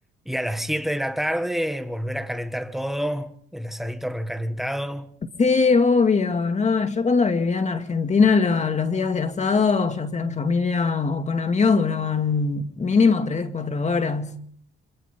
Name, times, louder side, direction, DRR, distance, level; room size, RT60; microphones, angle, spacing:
voice 1, 0.2-5.1, equal, ahead, 1.7 m, -28 dB
voice 2, 5.4-14.4, left 4 dB, 35° left, 2.3 m, -21 dB
27.0 x 26.0 x 3.8 m
cardioid pair, 90°, 20 cm